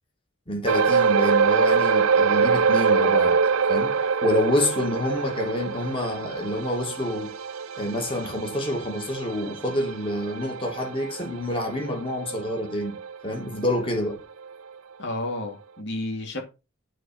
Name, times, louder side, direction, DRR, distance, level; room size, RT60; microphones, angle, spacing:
voice 1, 0.5-3.4 3.7-7.3 7.8-13.0 13.2-14.2, left 1 dB, 25° left, 2.2 m, -27 dB
sound 1, 0.7-13.4 13.7-13.9 14.4-14.5, right 5 dB, 80° right, 0.6 m, -24 dB
voice 2, 15.0-16.4, left 1 dB, 55° left, 2.5 m, -31 dB
9.1 x 4.6 x 6.9 m
head